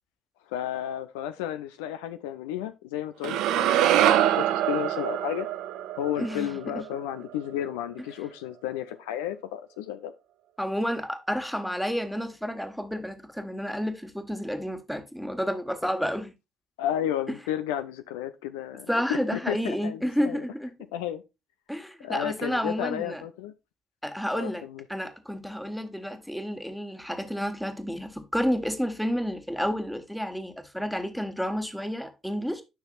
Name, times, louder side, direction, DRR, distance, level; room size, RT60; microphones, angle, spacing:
voice 1, 0.5-5.5 6.0-10.1 16.8-20.4 20.9-21.2 22.0-23.5 24.3-24.8, left 11 dB, 70° left, 0.5 m, -32 dB
sound 1, 3.2-7.5, right 12 dB, 65° right, 0.6 m, -25 dB
voice 2, 6.2-6.9 10.6-16.3 17.3-17.4 18.9-20.7 21.7-23.2 24.0-24.6 24.9-32.6, equal, ahead, 1.4 m, -30 dB
9.7 x 5.8 x 2.4 m
figure-of-eight pair, 45°, 0 cm